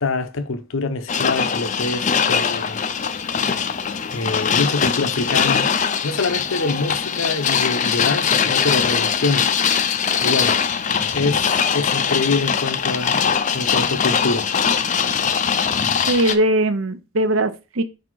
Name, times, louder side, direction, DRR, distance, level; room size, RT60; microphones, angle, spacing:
voice 1, 0.0-2.8 4.1-5.7 6.0-9.5 10.2-10.6 11.1-13.2 13.5-14.5, left 3 dB, 65° left, 0.7 m, -25 dB
sound 1, 1.1-16.4, left 7 dB, 35° left, 0.4 m, -21 dB
voice 2, 16.1-17.8, right 1 dB, 65° right, 0.7 m, -20 dB
5.1 x 4.1 x 4.6 m
head